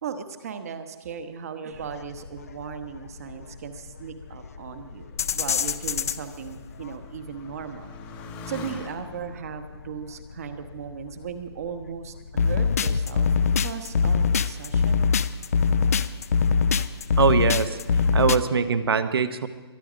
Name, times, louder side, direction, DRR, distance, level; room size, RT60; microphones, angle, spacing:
voice 1, 0.0-7.9 8.5-13.3 13.6-15.1, right 7 dB, 35° right, 9 dB, 1.2 m, -37 dB
sound 1, 1.7-18.4, left 5 dB, 35° left, 0.5 m, -24 dB
Motorcycle, 2.9-11.6 12.4-13.0, left 4 dB, 10° left, 0.9 m, -46 dB
voice 2, 17.2-19.5, right 5 dB, 60° right, 11 dB, 1.1 m, -23 dB
22.5 x 11.0 x 5.1 m, 1.2 s
hypercardioid pair, 170°, 14 cm